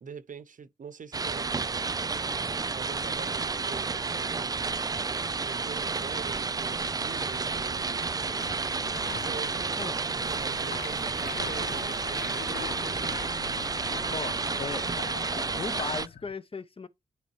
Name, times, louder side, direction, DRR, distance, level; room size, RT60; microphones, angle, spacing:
voice 1, 0.0-1.8 2.7-4.6 5.3-8.1 9.2-13.2, right 6 dB, 50° right, 0.7 m, -44 dB
sound 1, 1.1-16.1, right 4 dB, 25° right, 0.4 m, -31 dB
sound 2, 1.7-14.3, right 8 dB, 85° right, 0.9 m, -57 dB
sound 3, 6.6-16.3, left 10 dB, 70° left, 0.4 m, -43 dB
voice 2, 14.1-15.0 15.3-16.9, left 4 dB, 35° left, 0.7 m, -37 dB
9.0 x 3.5 x 3.0 m
supercardioid pair, 40°, 17 cm